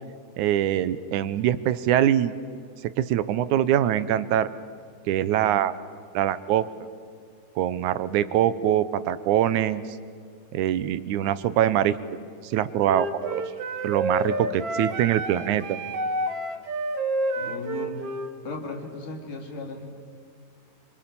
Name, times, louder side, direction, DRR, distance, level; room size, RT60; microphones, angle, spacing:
voice 1, 0.4-2.3 3.0-4.5 5.1-5.7 6.1-6.7 7.6-9.8 10.5-12.0 12.4-13.4 13.8-15.8, right 11 dB, 75° right, 14 dB, 2.0 m, -23 dB
Wind instrument woodwind instrument, 12.8-18.3, right 2 dB, 55° right, 2.2 m, -29 dB
voice 2, 17.4-18.0 18.4-20.0, left 3 dB, 65° left, 1 dB, 4.5 m, -36 dB
26.5 x 25.0 x 7.0 m, 2.2 s
omnidirectional pair, 3.9 m